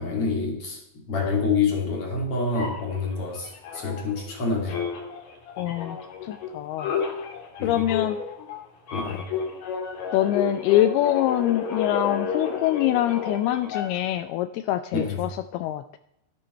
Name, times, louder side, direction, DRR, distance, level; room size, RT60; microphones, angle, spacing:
voice 1, 0.0-4.8 5.6-5.7 7.6-7.8 8.9-9.2 14.9-15.2, left 4 dB, 40° left, 0 dB, 3.0 m, -27 dB
sound 1, 2.5-4.4 4.7-14.2, left 6 dB, 55° left, 2.2 m, -32 dB
voice 2, 5.6-6.0 6.2-6.9 7.6-8.2 10.1-16.0, left 13 dB, 85° left, 11 dB, 2.3 m, -24 dB
12.5 x 10.5 x 4.4 m, 0.78 s
omnidirectional pair, 4.9 m